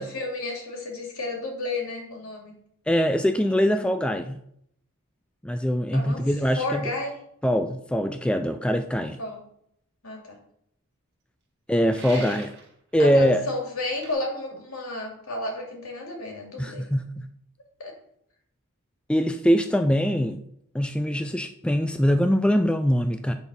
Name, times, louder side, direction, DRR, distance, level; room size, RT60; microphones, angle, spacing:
voice 1, 0.0-2.5 5.9-6.2 6.6-7.2 9.2-9.4 10.0-10.4 12.1-12.3 13.0-16.8 17.8-17.9, left 2 dB, 75° left, 0 dB, 2.4 m, -32 dB
voice 2, 2.9-4.4 5.4-6.9 7.4-9.2 11.7-12.5 12.9-13.4 16.6-17.2 19.1-20.4 20.7-23.3, equal, 5° left, 7 dB, 0.3 m, -23 dB
sound 1, 11.9-12.7 13.9-14.1, right 5 dB, 50° right, 1.7 m, -42 dB
9.1 x 4.1 x 5.4 m, 0.72 s
head